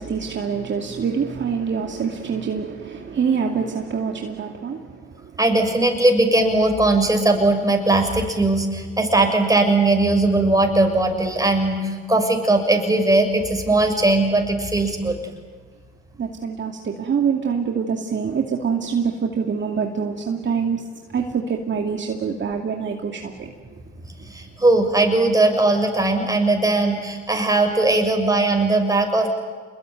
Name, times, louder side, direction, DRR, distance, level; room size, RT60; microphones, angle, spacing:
voice 1, 0.0-5.3 16.2-20.8 21.1-23.5, right 6 dB, 40° right, 2 dB, 2.5 m, -25 dB
voice 2, 5.4-15.3 24.2-29.3, right 2 dB, 10° right, 4 dB, 6.6 m, -19 dB
28.0 x 21.5 x 9.3 m, 1.5 s
supercardioid pair, 75°, 30 cm